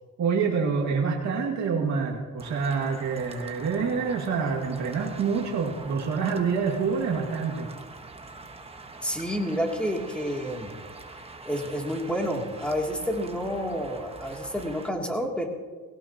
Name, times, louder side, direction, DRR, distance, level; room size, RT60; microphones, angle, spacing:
voice 1, 0.2-7.7, right 5 dB, 65° right, -1 dB, 2.3 m, -27 dB
sound 1, 2.4-14.9, right 3 dB, 20° right, 1.3 m, -44 dB
voice 2, 9.0-10.7 11.4-15.5, equal, 5° left, 0 dB, 2.9 m, -29 dB
20.5 x 17.5 x 3.0 m, 1.4 s
cardioid pair, 90°, 30 cm